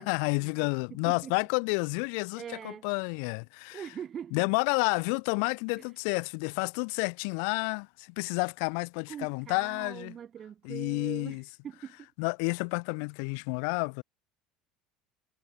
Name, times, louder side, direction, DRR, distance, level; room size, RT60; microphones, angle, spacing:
voice 1, 0.0-3.8 4.3-10.1 10.6-11.4 12.2-14.0, left 40 dB or more, 75° left, 0.7 m, -30 dB
voice 2, 0.9-1.4 2.3-2.9 3.7-4.5 5.8-5.9 9.1-12.1, right 8 dB, 35° right, 2.4 m, -42 dB
supercardioid pair, 130°, 0 cm